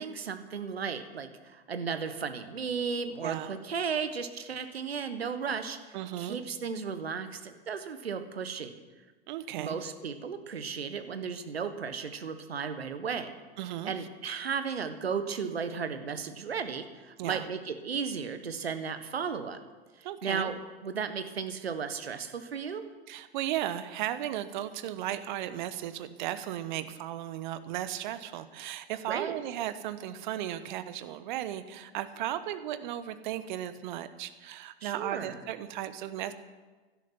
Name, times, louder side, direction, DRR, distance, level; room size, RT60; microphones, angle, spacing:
voice 1, 0.0-8.8 9.6-13.3 13.8-19.6 20.0-20.5 20.8-22.8 29.1-29.3 34.8-35.4, right 6 dB, 70° right, 9 dB, 1.5 m, -35 dB
voice 2, 3.2-3.5 5.9-6.4 9.3-9.8 13.6-13.9 17.2-17.5 20.0-20.5 23.1-36.3, right 12 dB, 50° right, 12 dB, 1.2 m, -35 dB
16.0 x 12.0 x 6.0 m, 1.3 s
figure-of-eight pair, 95°, 31 cm